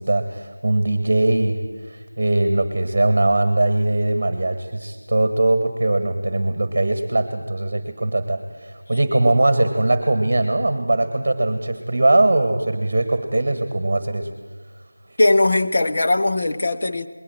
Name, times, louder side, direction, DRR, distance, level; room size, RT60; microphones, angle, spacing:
voice 1, 0.0-1.6 1.9-14.3, right 2 dB, 30° right, 9 dB, 1.5 m, -20 dB
voice 2, 15.2-17.1, left 2 dB, 35° left, 6 dB, 0.9 m, -19 dB
20.5 x 19.0 x 7.8 m, 1.3 s
figure-of-eight pair, 175°, 0 cm